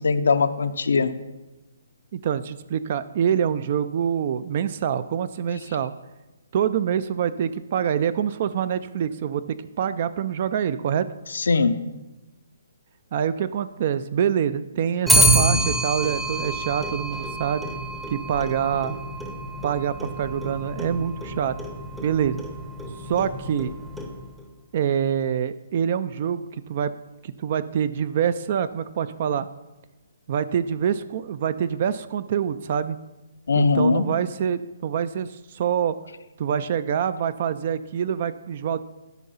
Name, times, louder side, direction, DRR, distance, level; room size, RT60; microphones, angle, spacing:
voice 1, 0.0-1.1 11.3-11.8 33.5-34.1, left 4 dB, 80° left, 11 dB, 0.6 m, -20 dB
voice 2, 2.1-5.9 6.5-11.1 13.1-17.6 18.1-18.9 19.6-21.5 22.0-22.4 23.0-23.7 24.7-26.9 27.2-29.5 30.3-33.0 33.5-36.0 36.4-38.8, right 8 dB, 35° right, 14 dB, 0.3 m, -25 dB
Clock, 15.1-24.4, right 1 dB, ahead, 0.7 m, -26 dB
12.0 x 4.8 x 5.5 m, 1.1 s
hypercardioid pair, 170°, 0 cm